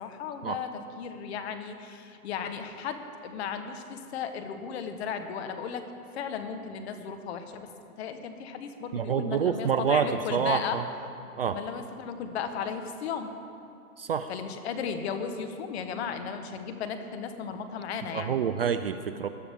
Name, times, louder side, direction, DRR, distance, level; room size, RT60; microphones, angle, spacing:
voice 1, 0.0-5.8 6.1-7.7 8.0-10.8 11.5-13.3 14.3-18.3, left 7 dB, 45° left, 8 dB, 1.3 m, -35 dB
voice 2, 8.9-10.8 11.4-11.6 14.0-14.3 18.1-19.3, right 7 dB, 40° right, 10 dB, 0.4 m, -27 dB
20.5 x 12.0 x 3.6 m, 2.7 s
hypercardioid pair, 145°, 46 cm